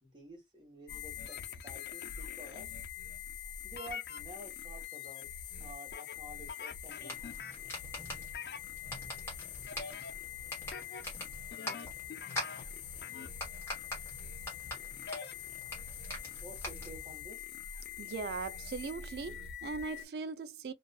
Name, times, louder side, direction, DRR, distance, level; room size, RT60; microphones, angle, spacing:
voice 1, 0.0-1.4 1.6-2.7 3.6-7.1 16.4-17.4, right 1 dB, 25° right, 1.1 m, -51 dB
sound 1, 0.9-20.0, left 7 dB, 60° left, 0.3 m, -44 dB
sound 2, 7.0-17.2, left 1 dB, 15° left, 1.2 m, -45 dB
voice 2, 18.0-20.7, right 4 dB, 60° right, 0.3 m, -39 dB
2.4 x 2.3 x 2.2 m
head